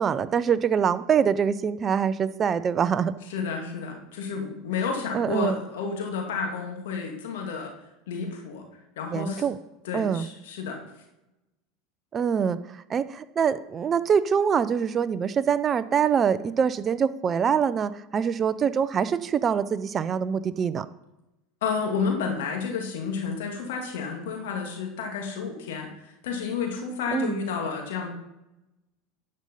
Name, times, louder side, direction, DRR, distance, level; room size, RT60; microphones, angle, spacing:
voice 1, 0.0-3.1 5.1-5.5 9.1-9.5 9.9-10.3 12.1-12.6 12.9-20.9 27.1-27.3, right 7 dB, 30° right, 14 dB, 0.6 m, -24 dB
voice 2, 3.3-7.7 8.1-8.6 9.0-9.5 9.8-10.8 21.6-28.1, left 5 dB, 80° left, 2 dB, 2.4 m, -31 dB
11.5 x 5.5 x 5.4 m, 0.94 s
hypercardioid pair, 100°, 0 cm